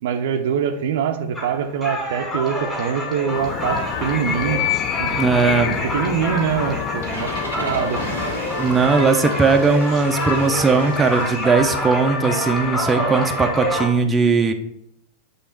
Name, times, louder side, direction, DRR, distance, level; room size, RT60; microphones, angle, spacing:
voice 1, 0.0-4.6 5.0-5.2 5.9-7.3 7.5-8.0, right 8 dB, 55° right, 6 dB, 0.6 m, -24 dB
sound 1, 1.3-13.9, left 1 dB, 15° left, 2.2 m, -27 dB
Animal, 3.3-9.1, left 11 dB, 35° left, 0.4 m, -28 dB
voice 2, 5.2-5.8 8.6-14.5, right 4 dB, 15° right, 4 dB, 0.6 m, -18 dB
Engine starting, 7.0-11.7, equal, 75° left, 2.1 m, -33 dB
8.2 x 3.3 x 4.5 m, 0.79 s
figure-of-eight pair, 90°, 0 cm